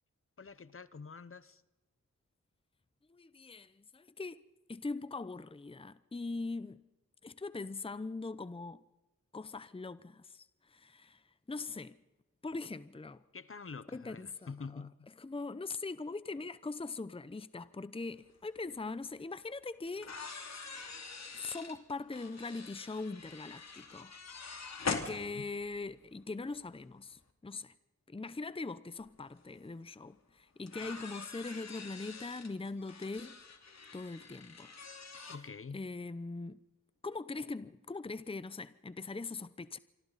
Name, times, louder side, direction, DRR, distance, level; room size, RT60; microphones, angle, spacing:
voice 1, 0.4-1.6 13.3-15.1 24.9-25.5 35.3-35.8, left 5 dB, 45° left, 1.0 m, -47 dB
voice 2, 3.1-4.4 4.7-6.8 7.2-8.8 9.3-11.2 11.5-12.0 12.4-13.2 13.9-14.8 15.2-20.1 21.3-24.1 24.8-27.7 28.1-33.4 33.9-34.7 35.1-35.3 35.7-36.6 37.0-39.8, left 3 dB, 20° left, 0.8 m, -41 dB
sound 1, 18.6-18.7 19.9-25.8 27.1-27.2 29.0-29.1 29.4-29.5 30.7-35.4, left 4 dB, 65° left, 2.8 m, -44 dB
27.0 x 25.0 x 4.1 m
wide cardioid pair, 70°, 29 cm